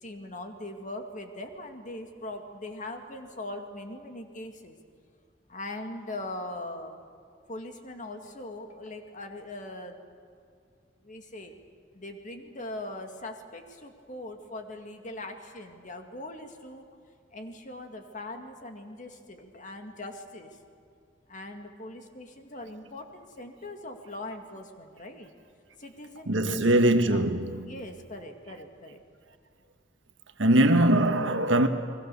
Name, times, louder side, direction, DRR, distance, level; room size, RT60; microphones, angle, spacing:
voice 1, 0.0-4.8 5.5-7.0 7.5-10.0 11.0-11.5 11.9-16.9 17.3-20.6 21.3-25.3 25.8-26.6 27.1-27.2 27.6-29.0, left 1 dB, 45° left, 2.0 m, -41 dB
voice 2, 26.2-27.8 30.4-31.7, right 1 dB, 85° right, 1.5 m, -22 dB
30.0 x 21.5 x 6.9 m
head